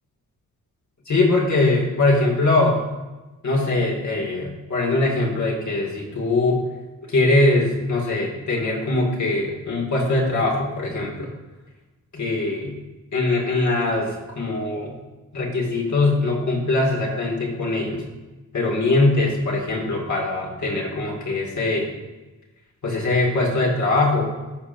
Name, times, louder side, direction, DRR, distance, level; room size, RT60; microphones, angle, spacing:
voice 1, 1.1-2.8 3.4-6.6 7.1-11.3 12.1-12.7 13.1-15.0 15.3-18.0 18.5-21.9 22.8-24.3, left 2 dB, 55° left, -1 dB, 2.3 m, -22 dB
15.0 x 5.0 x 2.6 m, 1.2 s
cardioid pair, 65°, 34 cm